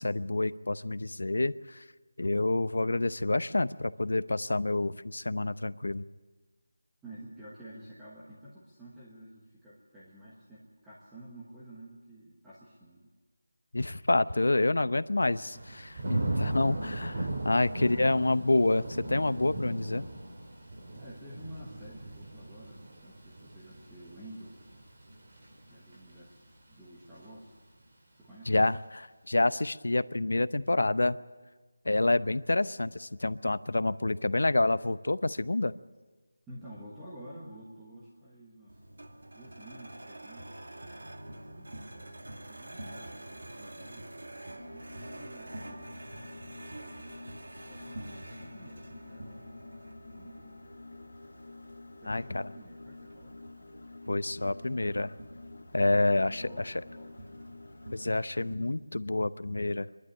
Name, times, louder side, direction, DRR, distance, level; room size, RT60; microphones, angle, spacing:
voice 1, 0.0-1.8 2.2-6.0 13.7-15.6 16.1-20.1 28.5-31.2 31.9-35.7 52.1-52.4 54.1-55.1 55.7-56.8 57.9-59.9, left 2 dB, 75° left, 15 dB, 0.7 m, -28 dB
voice 2, 7.0-13.1 15.4-15.6 17.6-17.9 20.9-24.6 25.7-27.6 28.1-28.6 36.5-38.8 39.3-40.6 41.3-44.1 44.7-47.4 47.7-49.5 50.1-50.6 52.0-53.4 55.9-57.2, right 1 dB, 5° right, -9 dB, 1.3 m, -51 dB
Thunder / Rain, 15.5-26.4 26.9-27.3, right 1 dB, 30° right, 2.4 m, -38 dB
sound 1, 38.7-58.5, right 1 dB, 90° right, 2.3 m, -47 dB
sound 2, 44.6-58.1, left 2 dB, 55° left, 3.0 m, -49 dB
24.5 x 11.5 x 10.0 m, 1.3 s
figure-of-eight pair, 180°, 0 cm